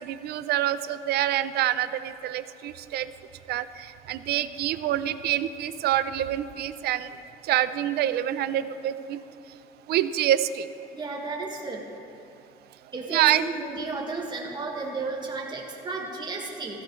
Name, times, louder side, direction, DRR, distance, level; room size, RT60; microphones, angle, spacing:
voice 1, 0.0-3.0 3.5-3.6 4.1-7.1 7.5-9.2 9.9-10.7 13.1-13.4, right 12 dB, 70° right, 13 dB, 0.5 m, -26 dB
voice 2, 10.9-11.9 12.9-16.8, right 3 dB, 25° right, -2 dB, 1.8 m, -33 dB
15.5 x 14.5 x 3.2 m, 2.4 s
cardioid pair, 110°, 17 cm